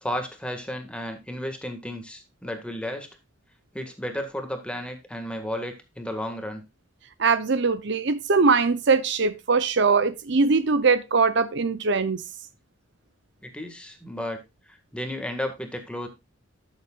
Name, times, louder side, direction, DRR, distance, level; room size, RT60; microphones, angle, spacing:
voice 1, 0.0-3.1 3.7-6.6 13.4-14.4 14.7-16.1, left 1 dB, 5° left, 1.8 m, -33 dB
voice 2, 7.2-12.2, right 4 dB, 60° right, 0.7 m, -21 dB
13.0 x 7.3 x 2.4 m
head